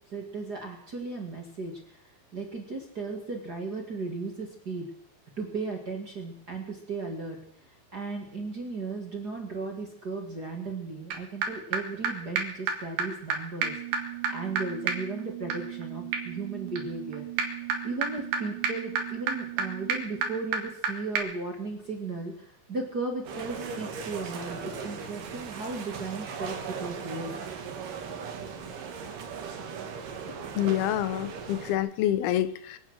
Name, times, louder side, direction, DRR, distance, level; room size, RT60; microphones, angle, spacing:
voice 1, 0.1-1.7 2.3-4.9 5.4-7.4 7.9-13.7 14.3-17.3 17.8-27.3, right 3 dB, 35° right, 1 dB, 1.9 m, -36 dB
sound 1, 11.1-11.2 11.4-11.5 11.7-11.8 12.0-12.1 12.4-12.5 12.7-12.8 13.0-13.1 13.3-13.4 13.6-20.9 21.2-21.3, right 6 dB, 80° right, 3.8 m, -32 dB
sound 2, 23.2-31.8, right 6 dB, 65° right, 3.1 m, -38 dB
voice 2, 30.6-32.8, left 12 dB, 85° left, 13 dB, 2.7 m, -27 dB
23.5 x 8.8 x 6.3 m, 0.68 s
omnidirectional pair, 4.4 m